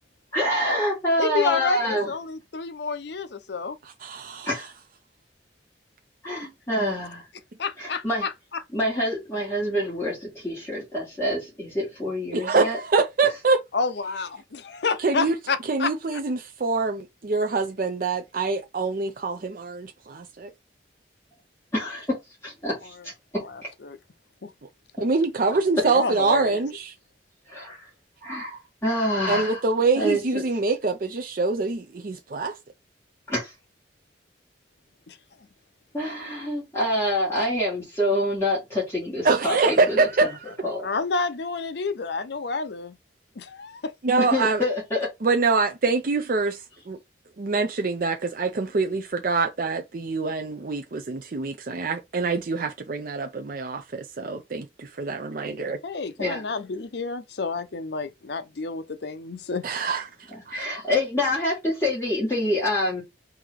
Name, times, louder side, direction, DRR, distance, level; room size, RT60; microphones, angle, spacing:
voice 1, 0.3-2.1 4.4-4.7 6.2-7.3 7.8-8.3 8.7-12.8 21.7-22.2 22.4-23.7 27.5-27.9 28.2-29.6 30.0-30.4 33.3-33.5 35.9-40.3 40.6-40.9 44.3-45.1 56.2-56.4 60.5-63.0, left 1 dB, 15° left, 2.0 m, -26 dB
voice 2, 1.2-3.8 7.6-8.6 13.7-16.2 23.4-24.0 24.4-24.5 25.9-26.6 35.1-35.2 40.8-43.0 43.4-43.9 55.5-59.7, left 4 dB, 65° left, 0.6 m, -29 dB
voice 3, 4.0-4.5 12.3-13.6 15.0-15.4 15.7-20.5 25.0-26.9 29.3-32.5 39.2-40.4 44.0-44.6 45.2-46.6 46.9-47.0 47.4-55.8 59.6-60.0 60.5-60.6, right 3 dB, 45° right, 0.5 m, -25 dB
3.8 x 2.9 x 4.6 m
head